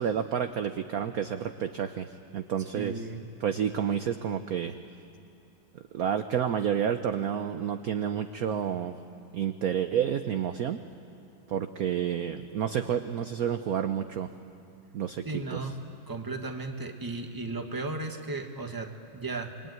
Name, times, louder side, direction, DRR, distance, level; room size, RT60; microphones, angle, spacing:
voice 1, 0.0-3.0 3.4-4.8 5.7-9.0 9.3-10.8 11.5-14.3 14.9-15.7, right 8 dB, 60° right, 8 dB, 1.0 m, -30 dB
voice 2, 2.7-3.2 15.2-19.5, right 3 dB, 10° right, 4 dB, 1.4 m, -35 dB
27.5 x 23.0 x 9.5 m, 2.5 s
omnidirectional pair, 2.2 m